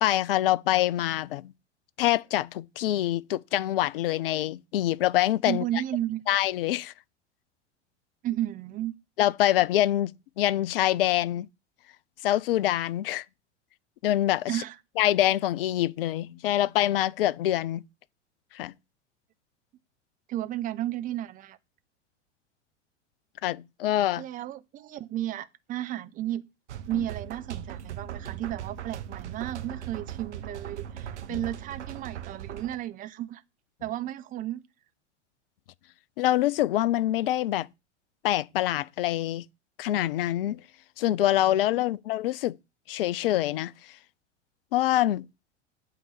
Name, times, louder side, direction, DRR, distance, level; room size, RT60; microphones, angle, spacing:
voice 1, 0.0-1.5 2.0-5.6 6.3-6.9 9.2-10.1 10.4-11.5 12.2-13.2 14.0-14.6 15.0-17.8 18.5-18.7 23.4-24.2 31.3-31.4 36.2-37.7 38.2-39.4 39.8-40.6 41.0-42.6 42.9-44.0 44.7-45.3, left 13 dB, 50° left, 0.5 m, -25 dB
voice 2, 5.4-6.2 8.2-8.9 14.5-14.8 20.3-21.6 24.2-26.4 26.9-33.4 33.8-34.6, right 13 dB, 25° right, 0.6 m, -33 dB
sound 1, 26.7-32.8, right 10 dB, 70° right, 1.0 m, -39 dB
9.0 x 3.9 x 6.8 m
figure-of-eight pair, 90°, 36 cm